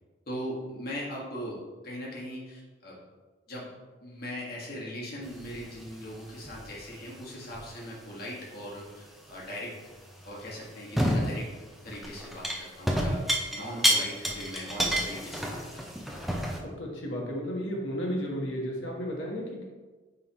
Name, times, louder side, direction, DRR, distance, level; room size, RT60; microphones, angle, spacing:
voice 1, 0.3-3.0 3.5-3.7 4.0-9.7 10.2-13.2 13.5-16.0, equal, 50° left, -5 dB, 1.7 m, -40 dB
sound 1, 5.2-6.1 6.4-6.8 7.5-7.6 10.4-10.5 11.0-11.5 11.9-16.6, equal, ahead, 0.5 m, -29 dB
voice 2, 16.6-19.6, equal, 70° left, -1 dB, 1.4 m, -33 dB
8.9 x 3.8 x 3.1 m, 1.3 s
head